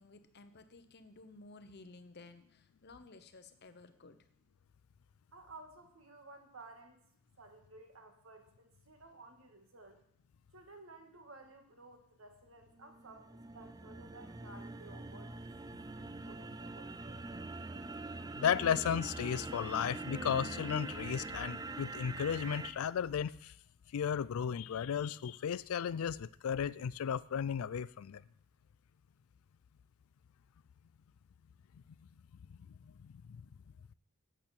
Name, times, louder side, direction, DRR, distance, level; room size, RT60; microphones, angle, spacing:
voice 1, 0.0-4.2, left 3 dB, 50° left, 0.9 m, -55 dB
voice 2, 5.3-7.0 7.4-10.0 10.5-15.3 15.9-16.9, right 3 dB, 65° right, 1.8 m, -55 dB
sound 1, 12.8-22.7, right 3 dB, 15° right, 0.4 m, -44 dB
voice 3, 18.4-23.5 23.9-28.2 33.0-33.4, left 8 dB, 75° left, 0.4 m, -34 dB
11.0 x 8.4 x 4.4 m
head